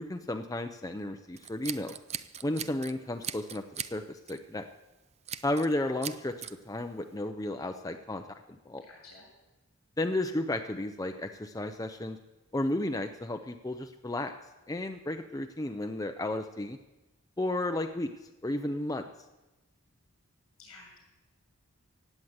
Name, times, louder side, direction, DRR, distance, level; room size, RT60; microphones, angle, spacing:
voice 1, 0.0-1.9 2.4-4.7 5.4-8.2 8.5-8.8 10.0-12.2 12.5-14.3 14.7-16.8 17.4-19.1, left 1 dB, 15° left, 6 dB, 0.6 m, -33 dB
Scissors, 1.4-2.9 3.2-4.0 4.3-4.5 5.3-5.7 6.0-6.5, right 9 dB, 30° right, 0.5 m, -39 dB
voice 2, 8.9-9.2 20.6-21.0, left 3 dB, 70° left, 1 dB, 7.0 m, -51 dB
16.0 x 9.3 x 8.1 m, 1.0 s
head